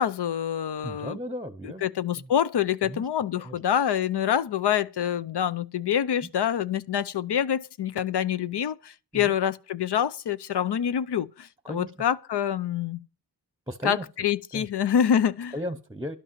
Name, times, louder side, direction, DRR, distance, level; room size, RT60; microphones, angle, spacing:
voice 1, 0.0-1.2 1.6-13.0 13.8-15.5, left 9 dB, 70° left, 0.7 m, -26 dB
voice 2, 0.8-1.8 2.2-2.3 2.8-3.1 3.4-3.5 9.1-9.4 11.6-11.9 13.7-14.0 14.5-14.7 15.5-16.2, equal, 10° right, 0.9 m, -35 dB
12.0 x 5.4 x 7.4 m
wide cardioid pair, 80°, 41 cm